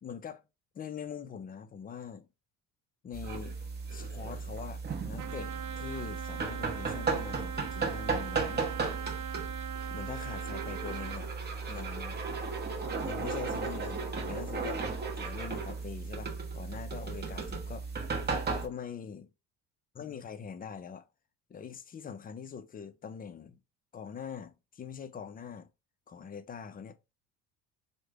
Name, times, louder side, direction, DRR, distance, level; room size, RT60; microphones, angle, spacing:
voice 1, 0.0-0.4 0.7-2.3 3.0-3.6 3.9-8.7 9.9-11.3 11.7-12.2 13.0-14.8 15.2-17.9 18.6-19.3 20.0-21.1 21.5-23.6 23.9-25.7 26.1-27.0, left 7 dB, 25° left, 0.4 m, -43 dB
sound 1, 3.1-18.7, right 4 dB, 30° right, 0.9 m, -35 dB
Trumpet, 5.2-11.2, right 9 dB, 55° right, 0.6 m, -41 dB
3.2 x 2.1 x 3.5 m
supercardioid pair, 90°, 35 cm